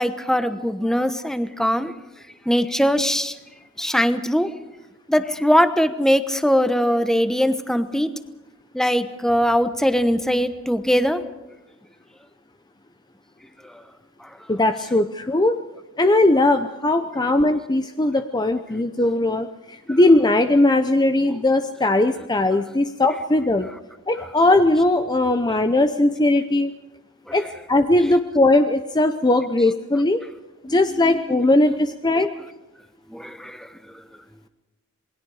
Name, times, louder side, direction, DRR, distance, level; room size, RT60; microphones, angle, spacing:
voice 1, 0.0-1.9 2.5-3.3 3.8-4.5 5.1-8.1 8.7-11.2 27.3-27.4 30.7-31.5 33.1-33.7, equal, ahead, 10 dB, 1.0 m, -21 dB
voice 2, 14.5-15.6 16.0-23.7 24.1-26.7 27.3-30.2 30.7-32.3, left 2 dB, 20° left, 8 dB, 0.7 m, -19 dB
27.5 x 21.0 x 4.9 m, 1.0 s
head